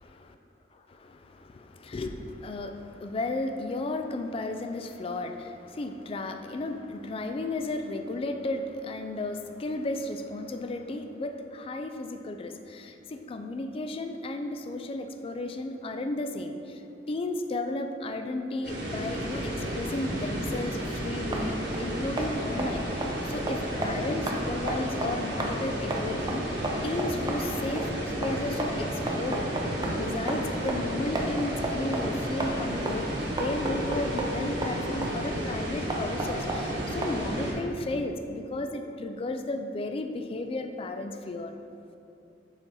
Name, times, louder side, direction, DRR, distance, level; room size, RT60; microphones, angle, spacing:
voice 1, 1.0-16.8 17.1-29.5 29.8-33.1 33.4-41.5, left 2 dB, 30° left, 7 dB, 0.3 m, -34 dB
sound 1, 18.6-37.5, right 1 dB, 65° right, 1.1 m, -33 dB
sound 2, 20.8-37.5, right 1 dB, 25° right, 0.5 m, -35 dB
5.8 x 4.1 x 3.9 m, 2.7 s
head